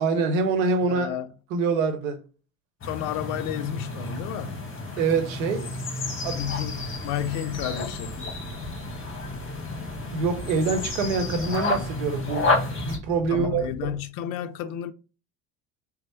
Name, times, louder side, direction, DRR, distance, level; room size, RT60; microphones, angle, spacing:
voice 1, 0.0-1.1 1.5-2.2 5.0-5.7 6.2-6.4 10.1-12.5 12.8-13.6, right 4 dB, 70° right, 0.9 m, -25 dB
voice 2, 0.8-1.3 2.8-4.7 6.3-8.2 13.3-14.9, left 10 dB, 50° left, 0.5 m, -31 dB
sound 1, 2.8-13.0, left 3 dB, 30° left, 1.3 m, -31 dB
sound 2, 6.2-14.0, right 3 dB, 25° right, 0.7 m, -43 dB
4.1 x 2.0 x 3.0 m
hypercardioid pair, 70°, 41 cm